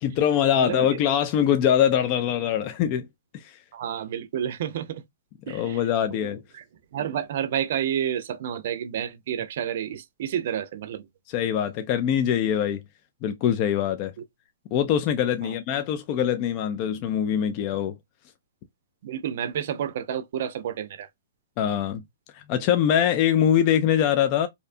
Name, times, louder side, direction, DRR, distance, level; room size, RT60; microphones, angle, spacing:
voice 1, 0.0-3.1 3.3-3.6 5.5-6.4 11.3-12.8 13.2-14.1 14.7-17.9 21.6-22.0 22.3-24.5, left 9 dB, 35° left, 0.3 m, -23 dB
voice 2, 0.6-1.0 3.7-5.0 5.5-5.8 6.2-6.3 6.5-6.6 6.9-11.1 15.4-15.5 19.0-21.1, right 9 dB, 60° right, 0.4 m, -30 dB
2.6 x 2.1 x 2.5 m
hypercardioid pair, 140°, 0 cm